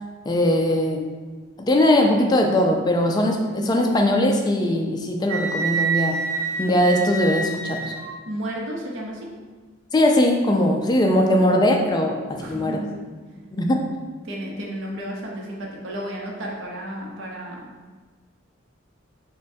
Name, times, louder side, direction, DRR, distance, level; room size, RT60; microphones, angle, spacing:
voice 1, 0.3-1.1 1.6-6.2 6.6-7.9 9.9-12.8 13.5-13.9, left 1 dB, 20° left, 2 dB, 0.3 m, -20 dB
Wind instrument woodwind instrument, 5.3-8.1, right 4 dB, 15° right, 1.3 m, -27 dB
voice 2, 8.3-9.3 12.4-13.1 14.2-17.7, right 1 dB, 70° right, -1 dB, 0.7 m, -32 dB
5.3 x 2.2 x 2.6 m, 1.4 s
head